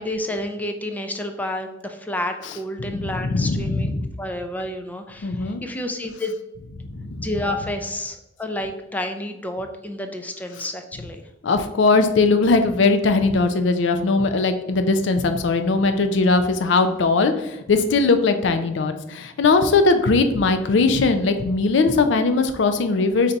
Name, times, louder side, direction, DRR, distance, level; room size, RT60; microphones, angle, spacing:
voice 1, 0.0-3.9 4.2-6.4 7.2-11.2, left 1 dB, 10° left, 5 dB, 0.4 m, -30 dB
voice 2, 2.8-4.1 5.2-5.6 6.9-7.2 11.4-23.3, left 3 dB, 70° left, 8 dB, 0.5 m, -20 dB
4.0 x 2.6 x 4.4 m, 0.91 s
head